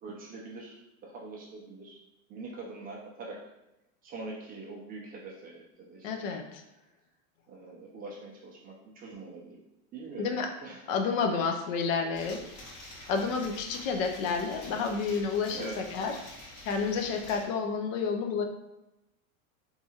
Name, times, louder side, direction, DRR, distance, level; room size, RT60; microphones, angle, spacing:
voice 1, 0.0-2.0 2.3-3.5 4.0-6.4 7.5-9.6 9.9-10.3 10.6-10.8 15.5-15.8, right 3 dB, 25° right, -3 dB, 0.3 m, -43 dB
voice 2, 6.0-6.6 10.2-10.5 10.9-12.4 13.1-16.2 16.6-18.4, left 5 dB, 65° left, 4 dB, 0.6 m, -30 dB
sound 1, 12.1-17.5, left 1 dB, 40° left, 1.2 m, -47 dB
2.8 x 2.3 x 2.7 m, 0.94 s
supercardioid pair, 120°, 42 cm